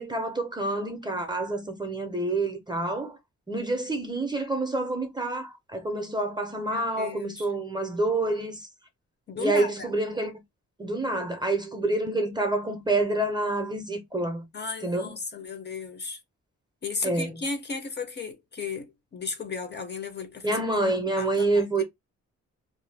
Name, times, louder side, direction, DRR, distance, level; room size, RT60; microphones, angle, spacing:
voice 1, 0.0-3.2 3.5-8.6 9.4-10.3 10.8-14.4 14.8-15.1 17.0-17.4 20.4-21.8, right 2 dB, 15° right, 0.5 m, -27 dB
voice 2, 6.7-7.5 9.3-9.9 14.5-16.2 16.8-21.6, left 4 dB, 35° left, 0.5 m, -35 dB
2.5 x 2.1 x 3.2 m
wide cardioid pair, 155°, 29 cm